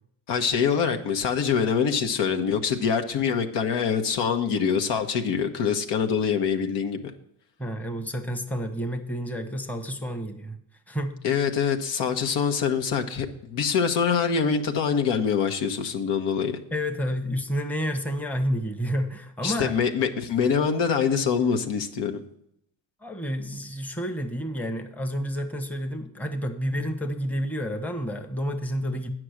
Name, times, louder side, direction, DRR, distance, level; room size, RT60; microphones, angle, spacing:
voice 1, 0.3-7.1 11.2-16.6 19.4-22.2, left 6 dB, 65° left, 5 dB, 1.1 m, -24 dB
voice 2, 7.6-10.6 10.9-11.2 16.7-19.7 23.0-29.1, equal, 5° left, 5 dB, 1.0 m, -30 dB
8.9 x 6.1 x 6.4 m, 0.73 s
supercardioid pair, 80°, 46 cm